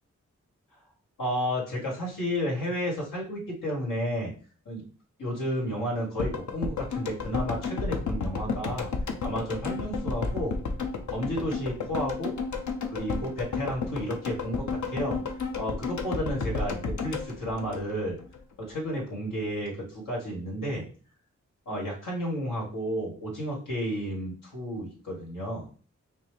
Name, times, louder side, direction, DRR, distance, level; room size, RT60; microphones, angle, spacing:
voice 1, 1.2-4.3 4.6-4.8 5.2-8.9 9.2-10.6 11.1-12.3 12.8-15.2 15.6-18.2 18.6-20.9 21.6-25.7, equal, 85° left, -3 dB, 1.7 m, -32 dB
sound 1, 6.2-18.4 18.7-18.8, left 4 dB, 65° left, 0.7 m, -32 dB
5.3 x 2.0 x 3.2 m, 0.40 s
cardioid pair, 40°, 31 cm